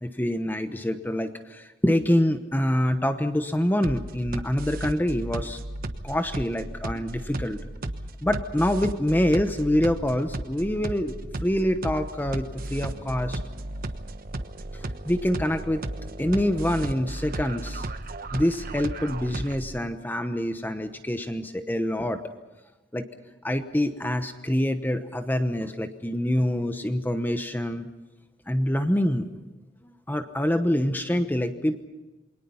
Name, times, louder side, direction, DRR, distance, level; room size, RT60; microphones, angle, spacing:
voice 1, 0.0-5.6 6.0-7.6 8.2-11.1 11.4-13.4 14.7-15.8 16.2-17.9 18.3-22.2 22.9-23.1 23.3-27.9 28.5-29.3 29.8-31.8, left 1 dB, 10° left, 8 dB, 1.0 m, -26 dB
sound 1, 3.8-19.8, right 1 dB, 55° right, 1.2 m, -34 dB
28.0 x 22.5 x 5.7 m, 1.1 s
head